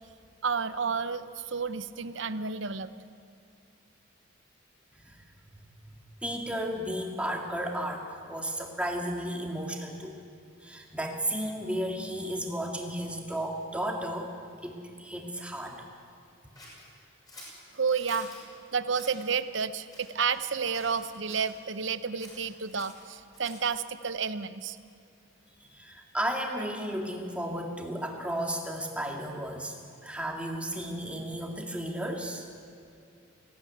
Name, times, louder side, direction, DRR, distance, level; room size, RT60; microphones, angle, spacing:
voice 1, 0.4-2.9 17.4-18.3 18.7-24.8, right 5 dB, 60° right, 12 dB, 0.8 m, -31 dB
voice 2, 5.8-10.2 10.6-14.3 14.6-15.8 25.6-29.7 30.0-32.5, equal, 5° right, 1 dB, 2.0 m, -34 dB
Scissors, 16.6-18.4 18.9-19.3 19.9-20.5 20.7-21.5 22.2-23.8, left 1 dB, 20° left, 6.3 m, -50 dB
19.5 x 16.0 x 9.4 m, 2.4 s
head